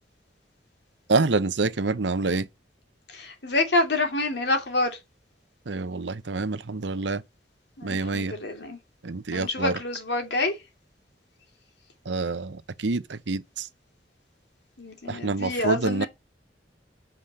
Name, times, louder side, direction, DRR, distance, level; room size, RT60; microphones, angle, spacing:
voice 1, 1.1-2.5 5.7-7.2 7.8-8.3 9.0-9.8 12.1-13.7 15.1-16.1, right 3 dB, 90° right, 0.8 m, -27 dB
voice 2, 3.1-5.0 7.8-8.8 9.3-10.6 14.8-16.1, left 2 dB, 70° left, 2.6 m, -27 dB
7.8 x 5.1 x 5.3 m
head